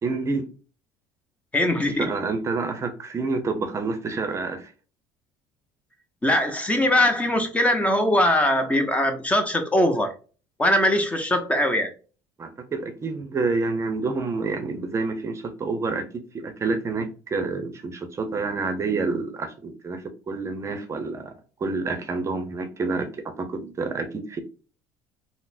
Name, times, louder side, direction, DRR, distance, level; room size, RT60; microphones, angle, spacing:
voice 1, 0.0-0.5 1.9-4.7 12.4-16.1 16.3-24.4, right 3 dB, 30° right, 0.6 m, -28 dB
voice 2, 1.5-2.1 6.2-10.1 10.6-11.9, left 1 dB, 15° left, 0.6 m, -21 dB
3.8 x 2.0 x 2.5 m
supercardioid pair, 100°, 10 cm